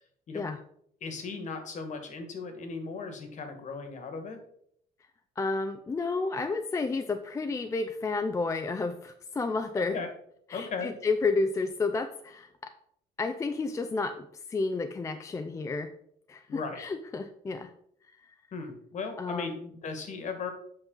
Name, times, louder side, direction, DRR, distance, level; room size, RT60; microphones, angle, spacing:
voice 1, 1.0-4.4 9.9-10.1 10.5-10.9 16.5-16.8 18.5-19.5 19.8-20.5, left 4 dB, 45° left, 6 dB, 1.5 m, -37 dB
voice 2, 5.4-10.0 10.5-12.5 13.2-15.9 16.3-17.7 18.1-18.3 19.2-19.7, left 3 dB, 20° left, 7 dB, 0.4 m, -31 dB
8.1 x 5.3 x 3.8 m, 0.68 s
cardioid pair, 155°, 17 cm